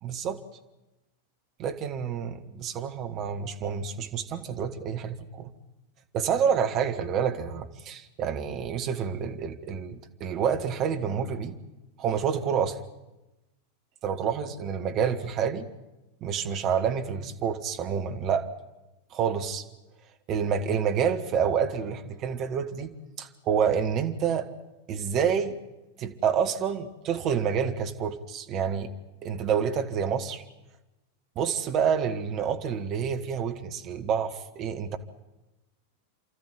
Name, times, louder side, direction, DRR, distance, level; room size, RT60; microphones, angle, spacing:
voice 1, 0.0-0.4 1.6-5.5 6.1-11.6 12.0-12.8 14.0-15.7 16.2-18.5 19.1-19.7 20.3-24.5 24.9-25.6 26.0-28.9 29.2-30.4 31.4-35.0, right 7 dB, 35° right, 7 dB, 1.8 m, -28 dB
29.0 x 13.5 x 9.8 m, 1.0 s
figure-of-eight pair, 90°, 0 cm